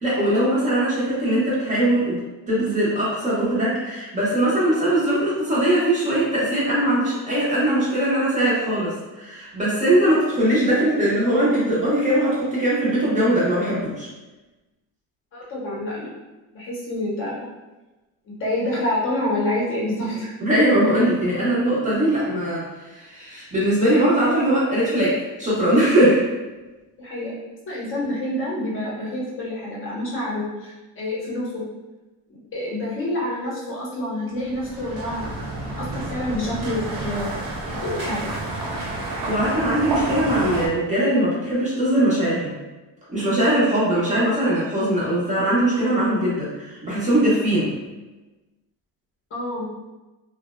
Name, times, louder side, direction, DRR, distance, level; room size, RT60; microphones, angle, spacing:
voice 1, 0.0-2.2 2.5-14.1 20.4-26.2 39.2-42.5 43.1-47.7, right 1 dB, 20° right, -8 dB, 0.5 m, -21 dB
voice 2, 15.3-16.1 16.5-17.5 18.3-20.3 27.0-27.3 27.7-31.6 32.3-35.3 35.6-37.6 37.8-38.3 49.3-49.7, left 1 dB, 35° left, -5 dB, 0.6 m, -27 dB
sound 1, 34.4-40.7, right 2 dB, 65° right, 0.7 m, -30 dB
2.6 x 2.0 x 2.3 m, 1.1 s
cardioid pair, 160°, 37 cm